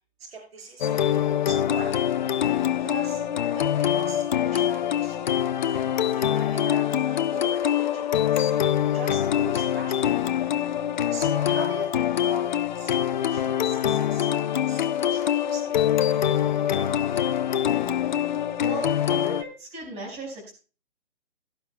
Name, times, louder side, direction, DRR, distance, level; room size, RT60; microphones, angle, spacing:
voice 1, 0.3-1.9 2.8-3.2 3.5-5.3 5.6-8.5 8.9-10.2 11.1-16.9, right 3 dB, 60° right, 2 dB, 6.6 m, -41 dB
sound 1, 0.8-19.4, left 10 dB, 45° left, 0.5 m, -24 dB
voice 2, 18.6-20.5, right 2 dB, 20° right, 0 dB, 5.0 m, -36 dB
17.0 x 11.5 x 2.2 m, 0.35 s
hypercardioid pair, 150°, 34 cm